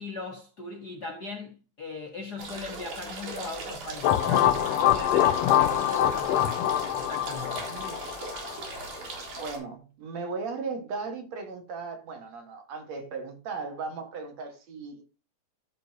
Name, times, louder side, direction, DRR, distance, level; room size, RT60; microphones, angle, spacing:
voice 1, 0.0-7.7, left 3 dB, 50° left, 1.3 m, -39 dB
sound 1, 2.4-9.6, right 3 dB, 80° right, 4.3 m, -38 dB
sound 2, 4.0-8.8, left 12 dB, 80° left, 1.5 m, -24 dB
sound 3, 5.6-7.6, equal, 45° right, 4.5 m, -52 dB
voice 2, 7.7-8.0 9.4-15.0, right 4 dB, 60° right, 2.8 m, -37 dB
13.5 x 5.4 x 2.9 m
omnidirectional pair, 3.6 m